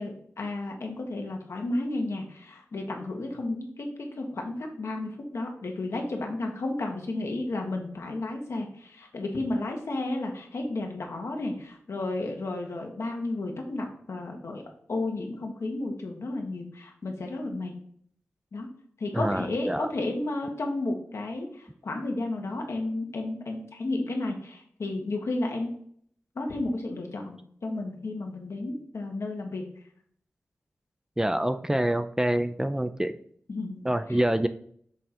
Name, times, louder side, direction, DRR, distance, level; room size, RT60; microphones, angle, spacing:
voice 1, 0.0-14.6 14.9-17.7 18.5-18.7 19.0-25.7 26.3-29.7 33.5-33.8 34.1-34.2, left 2 dB, 75° left, 2 dB, 1.3 m, -32 dB
voice 2, 19.1-19.9 31.2-33.1 33.8-34.5, right 1 dB, 10° right, 10 dB, 0.4 m, -26 dB
6.5 x 3.8 x 4.3 m, 0.62 s
wide cardioid pair, 70°, 5 cm